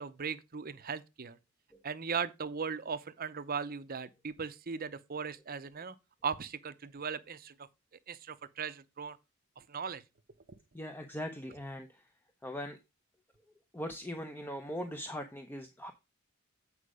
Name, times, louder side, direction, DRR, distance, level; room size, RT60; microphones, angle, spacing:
voice 1, 0.0-1.4 1.8-5.9 6.2-7.5 8.1-9.2 9.6-10.0, right 6 dB, 45° right, 0.7 m, -38 dB
voice 2, 10.7-11.9 12.4-12.8 13.7-15.9, equal, 10° left, 0.7 m, -40 dB
8.5 x 5.0 x 4.9 m
head